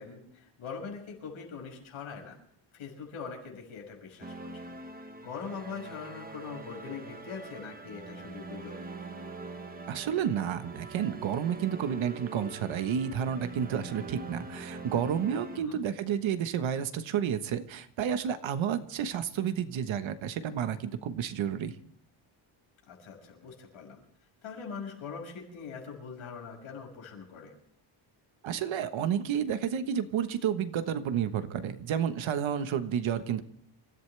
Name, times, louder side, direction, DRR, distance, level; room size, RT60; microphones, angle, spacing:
voice 1, 0.0-2.4 2.7-4.6 5.2-8.8 15.5-15.8 22.9-24.0 24.4-27.5, left 5 dB, 80° left, 1 dB, 5.9 m, -42 dB
sound 1, 4.2-15.6, right 3 dB, 20° right, 1.1 m, -44 dB
voice 2, 9.9-21.7 28.4-33.4, right 8 dB, 70° right, 10 dB, 1.4 m, -31 dB
27.5 x 14.5 x 3.4 m, 0.65 s
cardioid pair, 160°, 48 cm